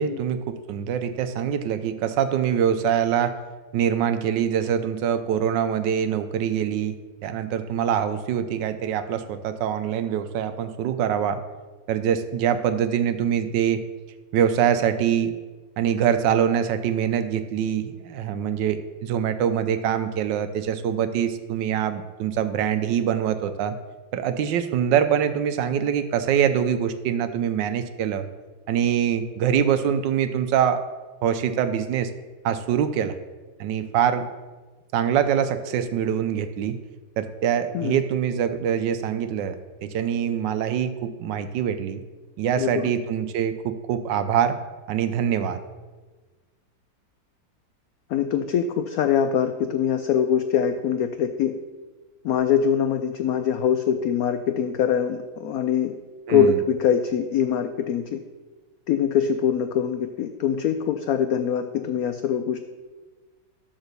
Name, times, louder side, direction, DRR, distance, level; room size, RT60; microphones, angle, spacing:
voice 1, 0.0-3.4 3.7-7.0 7.2-11.4 11.9-13.8 14.3-15.3 15.8-23.8 24.1-28.3 28.7-30.8 31.2-32.1 32.4-33.2 33.6-34.3 34.9-36.8 37.2-42.0 42.4-44.6 44.9-45.6 56.3-56.6, right 9 dB, 75° right, 10 dB, 1.2 m, -24 dB
voice 2, 42.6-42.9 48.1-51.5 52.2-55.9 56.3-58.2 58.9-62.6, left 8 dB, 85° left, 8 dB, 0.7 m, -23 dB
12.0 x 4.0 x 6.7 m, 1.3 s
omnidirectional pair, 2.1 m